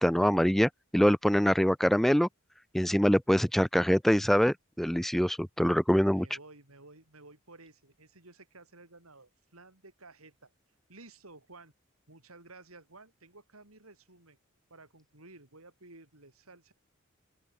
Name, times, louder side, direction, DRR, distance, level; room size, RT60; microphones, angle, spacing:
voice 1, 0.0-2.3 2.7-6.3, equal, ahead, 0.4 m, -24 dB
voice 2, 6.1-10.5 10.9-11.7 12.1-14.4 14.7-16.7, right 2 dB, 85° right, 6.7 m, -54 dB
open air
head